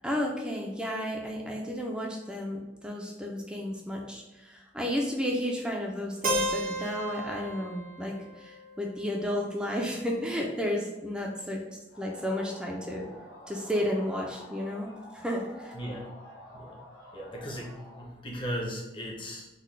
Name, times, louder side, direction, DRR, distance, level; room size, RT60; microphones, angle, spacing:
voice 1, 0.0-11.6 12.0-13.1 13.5-15.7, equal, 5° right, -1 dB, 0.4 m, -32 dB
Keyboard (musical), 6.2-10.1, right 1 dB, 55° right, 0.5 m, -34 dB
sound 1, 11.9-18.1, left 1 dB, 70° left, 1.1 m, -49 dB
voice 2, 15.7-16.1 16.5-16.8 17.1-19.5, equal, 30° left, -1 dB, 0.7 m, -37 dB
3.8 x 2.1 x 3.2 m, 1.1 s
head